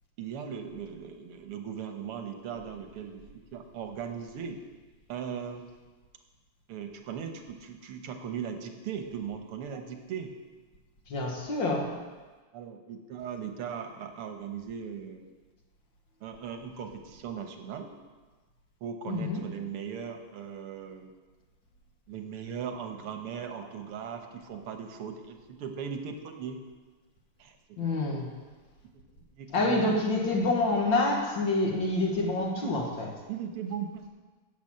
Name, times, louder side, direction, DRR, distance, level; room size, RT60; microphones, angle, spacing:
voice 1, 0.2-4.6 5.1-5.7 6.7-10.3 12.5-15.3 16.2-17.9 18.8-21.1 22.1-26.6 27.4-27.9 29.3-30.0 32.3-32.7 33.3-34.1, right 7 dB, 90° right, 5 dB, 2.0 m, -38 dB
voice 2, 11.1-11.9 19.1-19.4 27.8-28.3 29.5-33.1, left 2 dB, 60° left, 1 dB, 2.4 m, -27 dB
11.0 x 7.8 x 7.6 m, 1.3 s
omnidirectional pair, 2.4 m